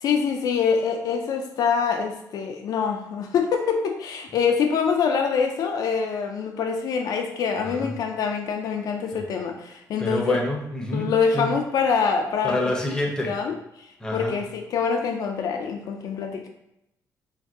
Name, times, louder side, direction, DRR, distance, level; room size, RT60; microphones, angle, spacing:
voice 1, 0.0-10.4 10.9-12.6 13.2-16.5, left 6 dB, 65° left, 3 dB, 0.3 m, -25 dB
voice 2, 7.6-7.9 9.1-9.2 10.0-11.5 12.4-13.4 14.0-14.4, left 1 dB, 10° left, 0 dB, 0.6 m, -27 dB
2.6 x 2.3 x 3.5 m, 0.82 s
cardioid pair, 105°, 7 cm